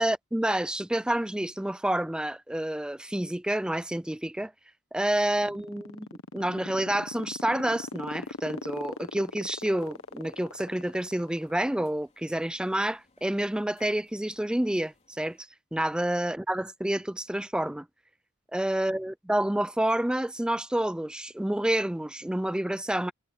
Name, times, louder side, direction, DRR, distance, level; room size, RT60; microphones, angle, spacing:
voice 1, 0.0-4.5 4.9-6.1 6.3-17.9 18.5-23.1, right 1 dB, 5° right, 0.3 m, -29 dB
sound 1, 5.2-11.7, left 3 dB, 90° left, 1.2 m, -39 dB
sound 2, 7.5-15.4, left 3 dB, 35° left, 4.4 m, -66 dB
head